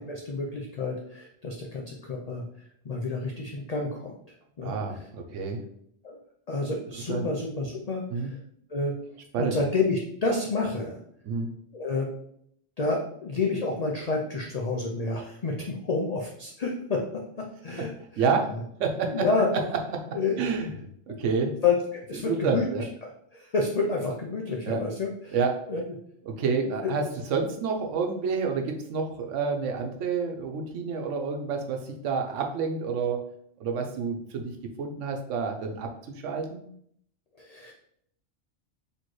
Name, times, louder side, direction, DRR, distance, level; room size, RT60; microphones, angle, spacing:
voice 1, 0.0-2.4 2.8-4.1 4.6-4.7 6.0-6.2 6.5-8.4 8.7-8.9 9.4-11.0 11.7-12.1 12.8-18.2 19.1-19.5 20.1-20.4 21.6-22.6 23.0-25.4 25.7-25.8 37.4-37.7, left 3 dB, 50° left, 0 dB, 0.4 m, -29 dB
voice 2, 4.6-5.6 7.1-7.3 8.1-8.3 9.3-9.6 11.2-11.5 17.8-17.9 18.2-18.5 18.8-19.3 20.4-20.7 21.1-21.5 22.2-22.9 24.7-24.8 25.3-25.6 26.3-33.2 33.6-34.5 34.8-35.9 36.2-36.6, right 5 dB, 85° right, 4 dB, 1.0 m, -28 dB
4.2 x 3.0 x 3.1 m, 0.69 s
omnidirectional pair, 1.2 m